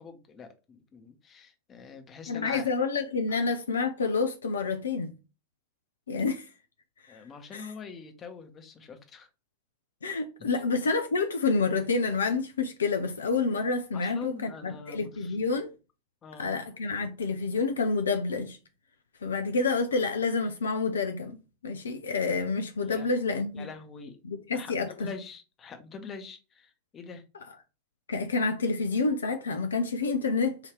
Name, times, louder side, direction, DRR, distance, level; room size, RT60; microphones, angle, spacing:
voice 1, 0.0-2.7 7.1-9.3 10.4-10.6 13.9-15.4 16.2-16.5 22.8-23.3 23.5-24.2 24.5-27.2, left 5 dB, 25° left, 0.9 m, -44 dB
voice 2, 2.3-5.1 6.1-6.4 7.1-7.2 7.5-7.7 10.0-15.7 16.4-18.6 19.2-23.7 24.2-25.1 28.1-30.6, left 4 dB, 70° left, 0.5 m, -28 dB
4.9 x 2.8 x 3.1 m
figure-of-eight pair, 90°, 0 cm